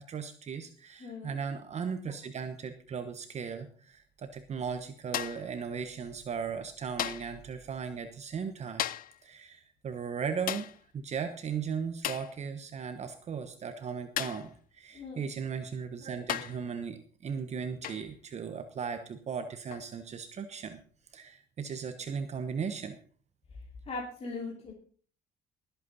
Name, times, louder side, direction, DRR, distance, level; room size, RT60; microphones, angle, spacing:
voice 1, 0.0-8.9 9.2-20.8 21.1-23.0, right 6 dB, 40° right, 8 dB, 1.1 m, -37 dB
voice 2, 1.0-1.4 14.9-15.3 23.9-24.7, left 3 dB, 35° left, -1 dB, 3.0 m, -39 dB
sound 1, 5.1-5.5 7.0-7.4 8.8-9.2 10.5-10.8 12.0-12.3 14.2-14.5 15.6-15.7 16.3-16.7 17.8-18.1 19.7-19.9, left 12 dB, 55° left, 0.6 m, -35 dB
19.5 x 8.3 x 4.1 m, 0.43 s
cardioid pair, 110°, 17 cm